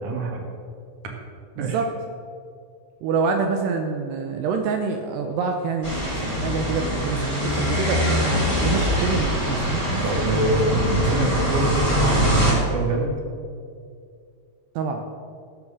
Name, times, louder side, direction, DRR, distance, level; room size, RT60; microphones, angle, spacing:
voice 1, 0.0-0.4 1.6-1.8 10.0-13.2, right 1 dB, 60° right, 1 dB, 1.6 m, -25 dB
voice 2, 1.6-1.9 3.0-8.3 8.6-10.0 10.3-10.5 14.8-15.0, right 5 dB, 80° right, 4 dB, 2.5 m, -26 dB
sound 1, 5.8-12.5, equal, 10° right, 2.5 m, -23 dB
15.5 x 7.6 x 6.1 m, 2.3 s
omnidirectional pair, 5.5 m